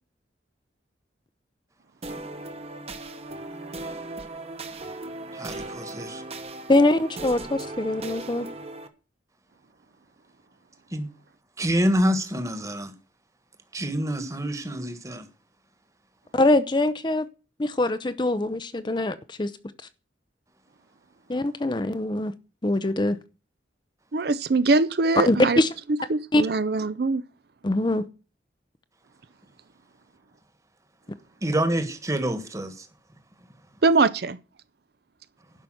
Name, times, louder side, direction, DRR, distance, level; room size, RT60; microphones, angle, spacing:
sound 1, 2.0-8.9, right 2 dB, 30° right, 1.1 m, -37 dB
voice 1, 5.3-6.2 10.9-11.1 11.6-12.9 13.7-15.2 31.4-32.9, equal, 15° right, 1.4 m, -27 dB
voice 2, 6.7-8.5 16.3-17.3 17.6-19.5 21.3-22.3 22.6-23.2 25.3-25.7 26.3-26.4 27.6-28.1, left 2 dB, 25° left, 0.5 m, -23 dB
voice 3, 24.1-25.6 26.1-27.2 33.8-34.4, right 3 dB, 55° right, 0.5 m, -22 dB
11.5 x 5.7 x 7.8 m
head